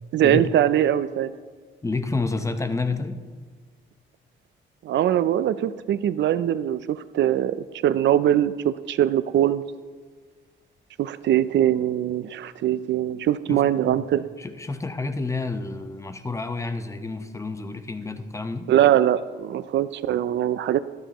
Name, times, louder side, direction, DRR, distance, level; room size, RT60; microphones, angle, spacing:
voice 1, 0.1-1.3 4.8-7.6 7.8-9.6 11.0-14.2 18.7-20.8, right 11 dB, 65° right, 15 dB, 0.5 m, -22 dB
voice 2, 1.8-3.2 13.5-14.1 14.4-18.7, left 3 dB, 15° left, 9 dB, 0.8 m, -29 dB
12.5 x 12.5 x 3.0 m, 1.5 s
cardioid pair, 90°, 20 cm